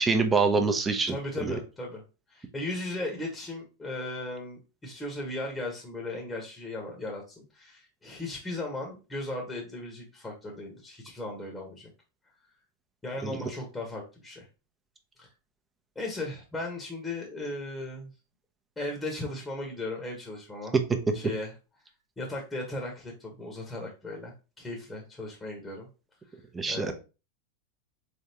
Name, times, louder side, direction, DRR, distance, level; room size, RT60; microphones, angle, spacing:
voice 1, 0.0-1.1 13.2-13.4 26.5-26.9, right 4 dB, 15° right, 6 dB, 0.7 m, -25 dB
voice 2, 1.1-2.0 2.3-11.9 13.0-14.5 15.2-15.3 15.9-18.1 18.8-20.7 21.1-21.5 22.2-25.9 26.7-26.9, left 2 dB, 15° left, 0 dB, 1.2 m, -37 dB
3.6 x 3.4 x 2.8 m, 0.31 s
hypercardioid pair, 110°, 0 cm